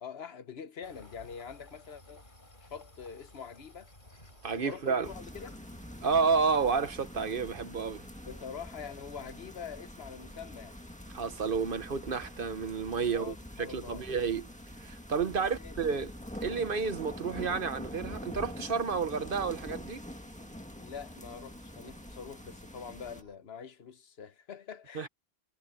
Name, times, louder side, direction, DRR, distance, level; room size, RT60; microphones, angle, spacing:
voice 1, 0.0-2.2 2.6-3.9 4.5-5.6 8.2-10.8 13.0-14.0 15.4-15.8 20.8-25.1, left 7 dB, 70° left, 1.2 m, -45 dB
sound 1, 0.8-7.8, left 1 dB, 50° left, 5.3 m, -57 dB
sound 2, 4.0-23.4, right 1 dB, 75° right, 7.4 m, -62 dB
voice 2, 4.4-5.1 6.0-8.1 11.1-14.5 14.8-16.1 16.4-20.0 24.9-25.1, right 5 dB, 55° right, 1.1 m, -31 dB
sound 3, 5.0-23.2, equal, 5° left, 1.7 m, -45 dB
omnidirectional pair, 1.1 m